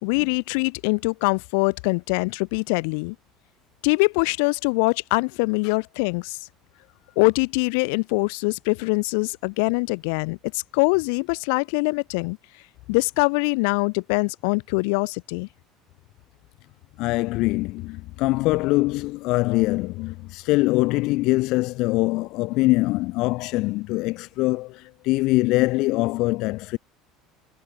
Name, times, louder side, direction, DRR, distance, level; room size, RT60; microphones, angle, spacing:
voice 1, 0.0-3.2 3.8-6.4 7.2-12.4 12.9-15.5, left 33 dB, 80° left, 2.3 m, -23 dB
voice 2, 17.0-26.8, left 21 dB, 65° left, 1.8 m, -23 dB
cardioid pair, 130°, 0 cm